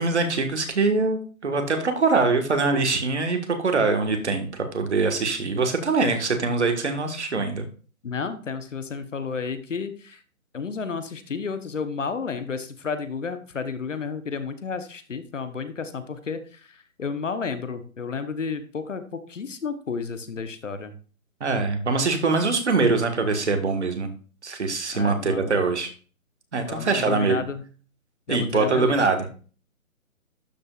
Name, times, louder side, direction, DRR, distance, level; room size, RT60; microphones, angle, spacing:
voice 1, 0.0-7.7 21.4-24.1 24.4-25.9 26.5-27.4 28.3-29.3, right 3 dB, 50° right, 6 dB, 1.6 m, -23 dB
voice 2, 8.0-10.2 10.5-20.9 24.9-25.6 26.7-27.6 28.3-29.0, left 5 dB, 60° left, 11 dB, 1.0 m, -32 dB
12.0 x 5.2 x 2.4 m, 0.38 s
hypercardioid pair, 175°, 43 cm